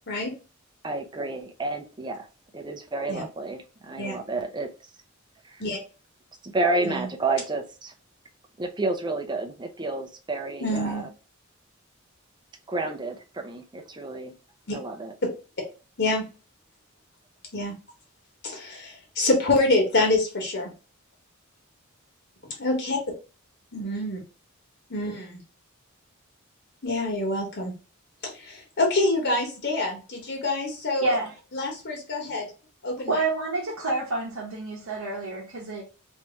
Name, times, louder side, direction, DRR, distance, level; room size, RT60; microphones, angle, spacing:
voice 1, 0.8-2.3 2.5-4.7 6.4-7.9 8.6-11.1 12.7-14.3 14.7-15.1, right 2 dB, 20° right, 0.5 m, -30 dB
voice 2, 10.6-11.1 14.7-14.8 16.0-16.2 17.5-17.7 18.4-20.7 22.6-23.0 23.7-24.2 24.9-25.4 26.8-27.7 28.2-31.1 31.5-32.5 32.8-33.2, left 2 dB, 55° left, 1.3 m, -26 dB
voice 3, 31.0-31.3 33.1-35.8, right 2 dB, 90° right, 1.0 m, -28 dB
3.0 x 2.7 x 3.4 m
head